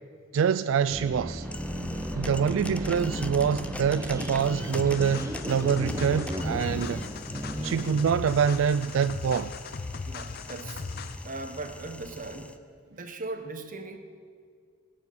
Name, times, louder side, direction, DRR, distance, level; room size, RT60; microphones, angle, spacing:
voice 1, 0.3-1.5 2.2-7.1 7.6-9.5, right 7 dB, 80° right, 0.3 m, -25 dB
sound 1, 0.9-8.1, equal, 15° right, 1.1 m, -35 dB
sound 2, 1.4-12.6, left 1 dB, 5° left, 0.6 m, -42 dB
sound 3, 4.7-11.3, left 4 dB, 55° left, 0.5 m, -38 dB
voice 2, 10.1-10.8 11.2-12.6 12.9-14.0, right 3 dB, 45° right, 1.2 m, -38 dB
19.0 x 7.2 x 8.6 m
head